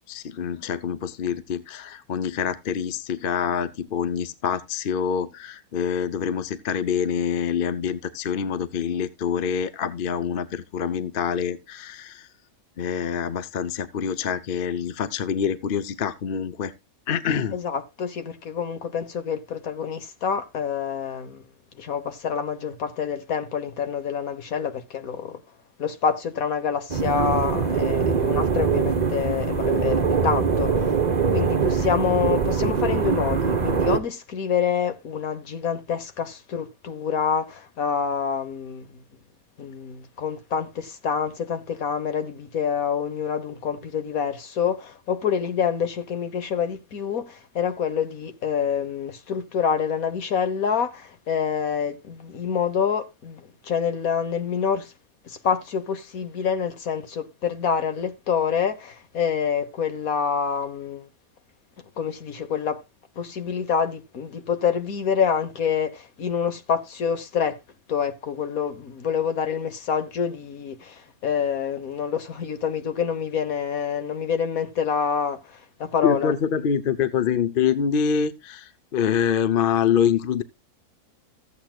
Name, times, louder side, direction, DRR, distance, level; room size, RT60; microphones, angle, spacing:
voice 1, 0.1-12.3 12.8-16.7 17.1-17.6 76.0-80.4, left 7 dB, 45° left, 0.8 m, -26 dB
voice 2, 17.5-21.4 21.8-25.4 25.8-31.0 31.3-39.0 39.6-54.9 55.2-61.1 62.0-62.8 63.2-67.6 67.9-76.3, left 7 dB, 70° left, 1.7 m, -27 dB
sound 1, 26.9-34.0, right 6 dB, 35° right, 0.9 m, -23 dB
15.0 x 8.4 x 2.4 m
omnidirectional pair, 1.6 m